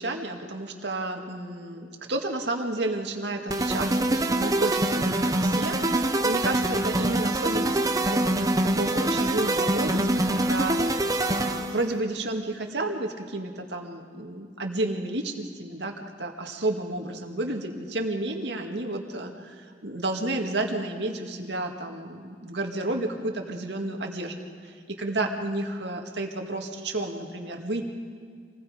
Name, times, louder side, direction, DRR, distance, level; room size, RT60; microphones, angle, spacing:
voice 1, 0.0-8.5 8.7-27.8, right 2 dB, 70° right, 2 dB, 2.1 m, -31 dB
sound 1, 3.5-11.8, right 1 dB, 20° right, 0.9 m, -25 dB
27.0 x 20.0 x 5.1 m, 2.1 s
head